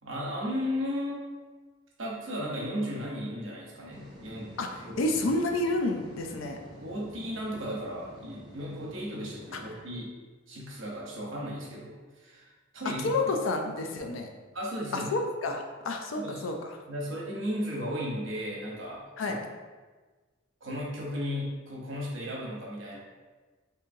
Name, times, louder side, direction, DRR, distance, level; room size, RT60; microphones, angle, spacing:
voice 1, 0.0-1.2 2.0-4.5 4.9-5.0 6.8-10.1 10.5-13.1 14.5-15.1 16.2-16.5 16.9-19.3 20.6-23.0, equal, 70° right, -3 dB, 0.9 m, -35 dB
sound 1, 3.9-9.8, equal, 20° right, 0.6 m, -48 dB
voice 2, 4.6-6.6 9.5-9.6 13.0-14.3 14.9-16.8 19.2-19.4, left 2 dB, 80° left, 3 dB, 0.4 m, -30 dB
3.8 x 2.7 x 2.6 m, 1.3 s
head